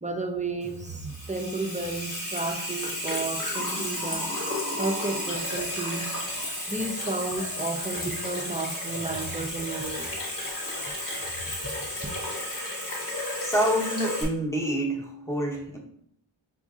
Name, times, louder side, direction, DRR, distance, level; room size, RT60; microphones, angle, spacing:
voice 1, 0.0-4.3 4.8-6.1 6.7-10.1 11.6-11.7 12.0-12.1, right 3 dB, 15° right, 4 dB, 0.5 m, -32 dB
Water tap faucet / Sink (filling or washing), 0.6-14.2, left 1 dB, 45° left, 1.4 m, -33 dB
voice 2, 13.4-15.8, right 1 dB, 5° left, -1 dB, 0.9 m, -27 dB
6.0 x 2.6 x 2.4 m, 0.66 s
wide cardioid pair, 70°, 46 cm